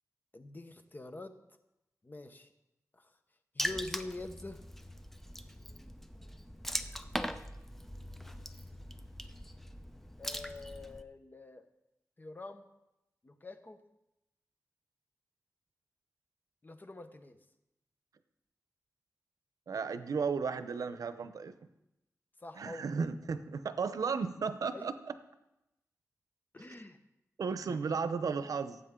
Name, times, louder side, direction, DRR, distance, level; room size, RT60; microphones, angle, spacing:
voice 1, 0.3-1.3 2.0-2.5 2.9-3.1 3.5-4.6 10.2-11.7 12.2-12.6 13.2-13.8 16.6-17.4 22.4-22.9 24.7-24.9 26.5-27.0 27.7-27.8, left 2 dB, 35° left, 8 dB, 1.0 m, -45 dB
Water / Splash splatter, 3.6-11.0, equal, 5° left, 0.6 m, -41 dB
voice 2, 19.7-21.5 22.5-25.1 27.4-28.8, right 5 dB, 90° right, 11 dB, 0.6 m, -34 dB
18.0 x 8.4 x 3.7 m, 0.90 s
wide cardioid pair, 80°, 6 cm